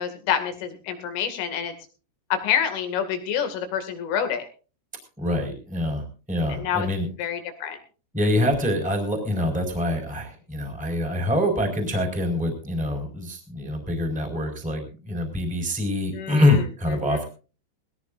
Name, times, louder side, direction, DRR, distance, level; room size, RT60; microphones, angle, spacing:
voice 1, 0.0-1.7 2.3-4.5 6.5-6.9 7.2-7.8 16.1-16.6 17.0-17.3, left 8 dB, 80° left, 6 dB, 4.8 m, -27 dB
voice 2, 5.2-7.1 8.1-17.2, left 1 dB, ahead, 3 dB, 3.7 m, -25 dB
21.5 x 17.0 x 2.5 m, 0.36 s
omnidirectional pair, 5.6 m